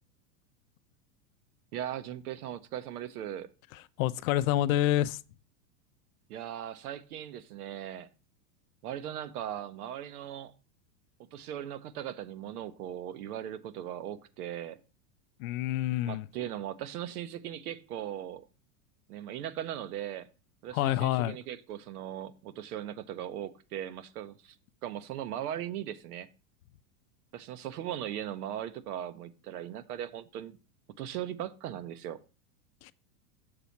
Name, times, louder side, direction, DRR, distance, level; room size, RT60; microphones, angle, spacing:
voice 1, 1.7-3.5 6.3-8.1 8.8-10.5 11.3-14.8 16.0-18.5 19.1-20.3 20.6-24.6 24.8-26.3 27.3-30.5 31.0-32.2, right 11 dB, 75° right, 0.9 m, -38 dB
voice 2, 3.7-5.2 15.4-16.3 20.7-21.4 32.8-32.9, left 14 dB, 65° left, 0.5 m, -28 dB
6.9 x 4.2 x 5.6 m
supercardioid pair, 145°, 46 cm